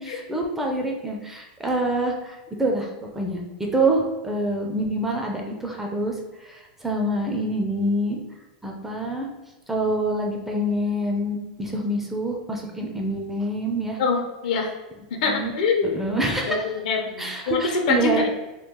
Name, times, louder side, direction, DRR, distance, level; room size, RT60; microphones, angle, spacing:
voice 1, 0.0-2.9 3.1-3.4 3.7-6.1 6.5-8.2 8.6-9.3 9.7-14.0 15.2-15.5 15.9-16.7 17.2-18.3, right 1 dB, 5° right, 0 dB, 0.4 m, -26 dB
voice 2, 14.0-14.7 15.1-15.9 16.5-18.3, left 4 dB, 70° left, 2 dB, 0.7 m, -24 dB
3.0 x 2.3 x 3.6 m, 1.0 s
supercardioid pair, 145°, 4 cm